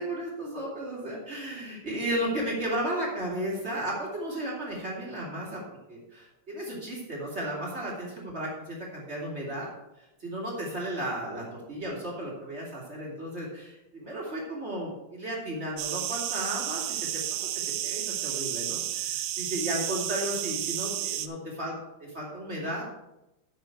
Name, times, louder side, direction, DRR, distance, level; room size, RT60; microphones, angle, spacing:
voice 1, 0.0-9.7 10.0-17.4 17.8-21.7 22.0-22.8, right 1 dB, 30° right, -4 dB, 2.5 m, -34 dB
sound 1, 15.8-21.3, right 12 dB, 75° right, 1.2 m, -32 dB
10.5 x 7.0 x 4.6 m, 0.92 s
omnidirectional pair, 2.4 m